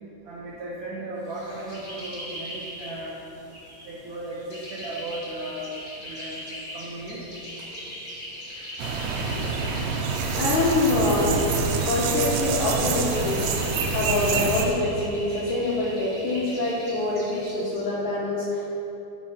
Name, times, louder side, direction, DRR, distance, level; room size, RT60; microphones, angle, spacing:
voice 1, 0.2-3.2 3.9-5.7 6.0-6.3 6.7-7.2, right 1 dB, 70° right, -8 dB, 1.7 m, -36 dB
sound 1, 1.2-17.9, equal, 45° left, 0.7 m, -40 dB
sound 2, 8.8-14.7, right 4 dB, 90° right, 2.8 m, -26 dB
voice 2, 10.3-11.4 11.8-13.4 13.9-18.7, left 2 dB, 75° left, -6 dB, 1.8 m, -25 dB
11.0 x 4.3 x 5.6 m, 2.9 s
omnidirectional pair, 4.6 m